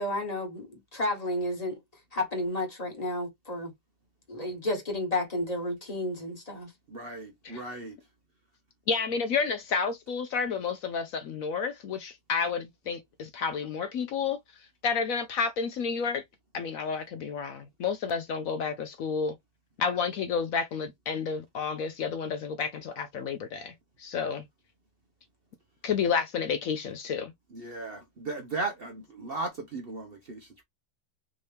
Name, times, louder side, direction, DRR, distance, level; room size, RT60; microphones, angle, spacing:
voice 1, 0.0-1.8 2.1-3.7 4.3-6.7, left 1 dB, 25° left, 1.2 m, -31 dB
voice 2, 6.9-8.0 27.5-30.6, right 3 dB, 50° right, 0.7 m, -36 dB
voice 3, 8.9-14.4 14.8-16.2 16.5-19.3 19.8-23.7 24.0-24.4 25.8-27.3, left 5 dB, 70° left, 0.9 m, -30 dB
3.5 x 2.8 x 3.3 m
omnidirectional pair, 1.8 m